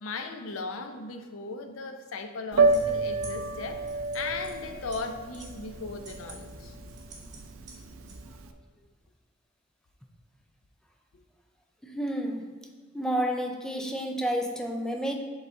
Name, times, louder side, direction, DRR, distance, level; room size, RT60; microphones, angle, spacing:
voice 1, 0.0-3.8 4.1-6.8, left 3 dB, 75° left, 7 dB, 0.6 m, -37 dB
Piano, 2.5-8.5, right 3 dB, 80° right, 0.4 m, -29 dB
sound 1, 2.7-8.2, right 2 dB, 40° right, 1.4 m, -47 dB
voice 2, 11.8-12.5 12.9-15.1, equal, 5° left, 2 dB, 0.4 m, -30 dB
8.1 x 3.9 x 3.7 m, 1.5 s
head